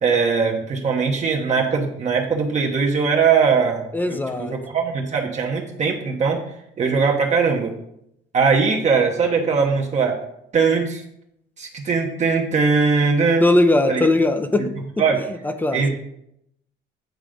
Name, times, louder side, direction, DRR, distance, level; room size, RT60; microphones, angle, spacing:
voice 1, 0.0-6.4 6.8-7.7 8.3-10.2 10.5-11.0 11.6-13.5 13.9-14.0 15.0-15.2 15.7-15.9, right 5 dB, 35° right, 0 dB, 1.0 m, -20 dB
voice 2, 3.9-4.6 13.4-14.7 15.4-15.8, left 2 dB, 10° left, 8 dB, 0.6 m, -19 dB
9.2 x 4.8 x 5.1 m, 0.77 s
cardioid pair, 160°, 21 cm